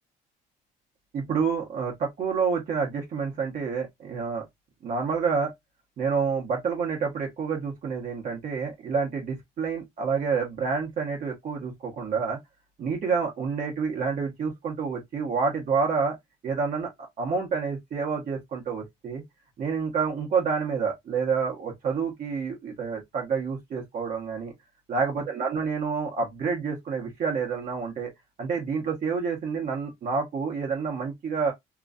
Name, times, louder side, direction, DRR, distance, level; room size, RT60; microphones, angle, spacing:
voice 1, 1.1-4.4 4.8-5.5 6.0-12.4 12.8-16.2 16.4-16.9 17.2-19.2 19.6-24.5 24.9-28.1 28.4-31.5, right 5 dB, 50° right, 1.1 m, -28 dB
3.0 x 2.4 x 2.4 m
cardioid pair, 110°, 17 cm